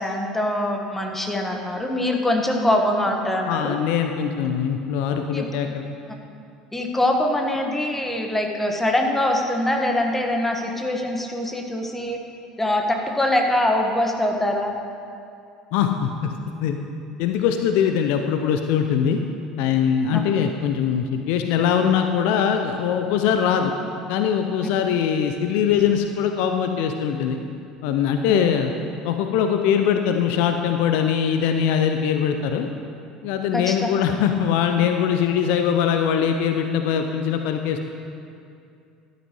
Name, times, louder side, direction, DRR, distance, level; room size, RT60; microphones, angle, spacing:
voice 1, 0.0-3.8 5.3-5.5 6.7-12.2 12.6-14.7 20.1-20.2 28.3-28.4 33.5-33.7, left 1 dB, 10° left, 2 dB, 1.4 m, -23 dB
voice 2, 3.5-5.9 15.7-16.3 16.6-16.8 17.2-19.2 19.6-23.7 24.1-27.4 27.8-28.7 29.0-32.7 33.2-37.8, left 8 dB, 60° left, 6 dB, 0.6 m, -22 dB
13.0 x 11.5 x 3.1 m, 2.5 s
figure-of-eight pair, 65°, 3 cm